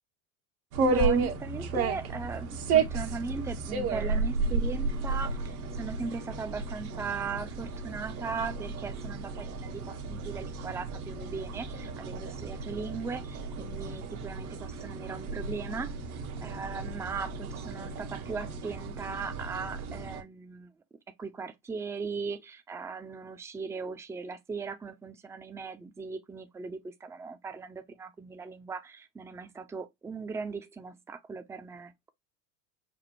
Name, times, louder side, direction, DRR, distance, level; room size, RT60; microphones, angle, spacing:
sound 1, 0.7-20.2, right 4 dB, 75° right, 1.1 m, -33 dB
voice 1, 0.8-15.9 16.4-20.7 21.2-32.1, right 4 dB, 5° right, 0.4 m, -38 dB
6.0 x 2.2 x 3.0 m
hypercardioid pair, 80°, 44 cm